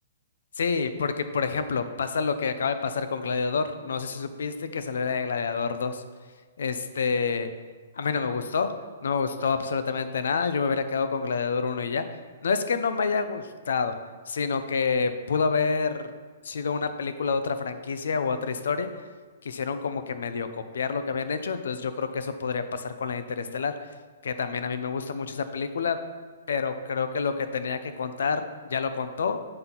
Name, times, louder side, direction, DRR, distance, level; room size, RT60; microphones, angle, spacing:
voice 1, 0.6-6.0 6.6-7.5 8.0-8.7 9.0-12.1 12.4-14.0 14.3-16.1 16.4-18.9 19.4-23.7 24.2-26.0 26.5-29.4, left 5 dB, 80° left, 10 dB, 0.6 m, -28 dB
7.6 x 6.0 x 3.9 m, 1.4 s
hypercardioid pair, 165°, 0 cm